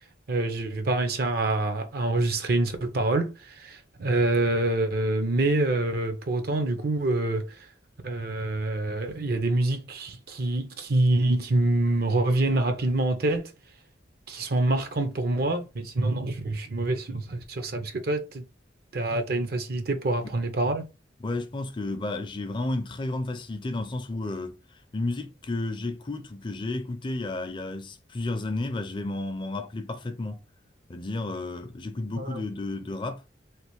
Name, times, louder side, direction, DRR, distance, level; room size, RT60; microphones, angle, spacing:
voice 1, 0.3-7.7 8.0-13.5 14.3-18.4 18.9-20.8 32.2-32.4, right 2 dB, 55° right, 0.6 m, -26 dB
voice 2, 21.2-30.4 30.9-33.2, left 2 dB, 25° left, 0.4 m, -32 dB
3.3 x 2.4 x 3.0 m
head